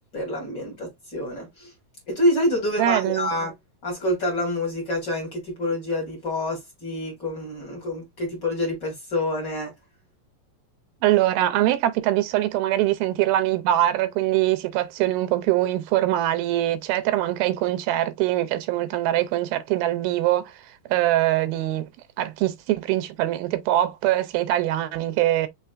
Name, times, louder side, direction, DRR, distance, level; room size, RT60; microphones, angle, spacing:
voice 1, 0.1-1.7 2.1-3.5 3.8-9.7, left 1 dB, 35° left, 2.0 m, -27 dB
voice 2, 2.8-3.3 11.0-20.5 20.9-21.9 22.2-25.5, right 14 dB, 85° right, 2.5 m, -23 dB
5.6 x 3.8 x 2.4 m
omnidirectional pair, 4.2 m